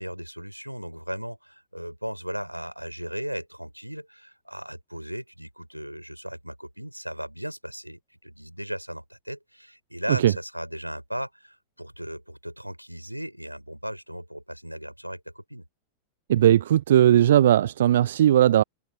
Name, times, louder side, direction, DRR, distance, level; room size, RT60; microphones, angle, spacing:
voice 1, 0.0-15.7, equal, 90° right, 4.1 m, -36 dB
voice 2, 16.3-18.6, right 11 dB, 60° right, 0.4 m, -18 dB
figure-of-eight pair, 90°, 0 cm